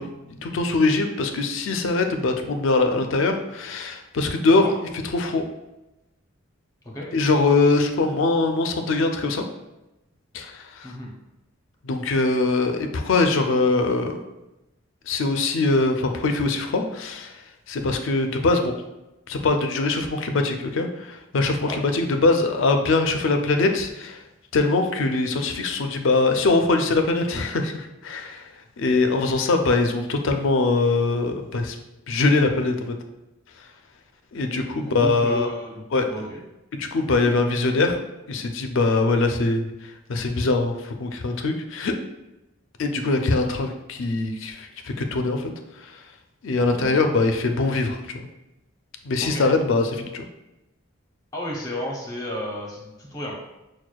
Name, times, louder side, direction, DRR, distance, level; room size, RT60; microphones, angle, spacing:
voice 1, 0.0-4.7 5.1-5.5 7.1-9.5 10.3-10.9 11.8-14.2 15.1-17.3 17.7-18.8 19.3-24.2 24.5-28.4 28.8-31.8 32.1-32.9 34.3-35.5 35.9-36.1 36.7-38.0 38.3-39.7 40.1-42.0 42.8-45.5 46.4-48.3 49.0-50.2, left 3 dB, 65° left, 6 dB, 0.4 m, -22 dB
voice 2, 34.8-36.4 46.6-47.1 49.2-49.4 51.3-53.4, left 1 dB, 15° left, -2 dB, 0.6 m, -33 dB
6.1 x 2.2 x 2.3 m, 0.97 s
head